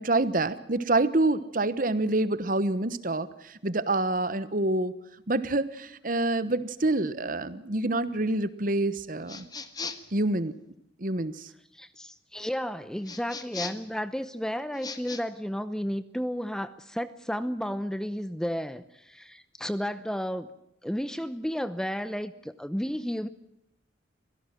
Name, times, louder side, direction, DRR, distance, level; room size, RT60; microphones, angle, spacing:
voice 1, 0.0-4.9 5.3-9.5 10.1-10.5 11.0-11.3, right 2 dB, 45° right, 14 dB, 1.2 m, -27 dB
sound 1, 9.3-10.2 13.0-13.9 14.7-15.2, left 4 dB, 20° left, 1.5 m, -38 dB
voice 2, 11.7-20.5 20.8-23.3, equal, 5° left, 13 dB, 0.8 m, -32 dB
25.0 x 17.5 x 7.6 m, 0.83 s
head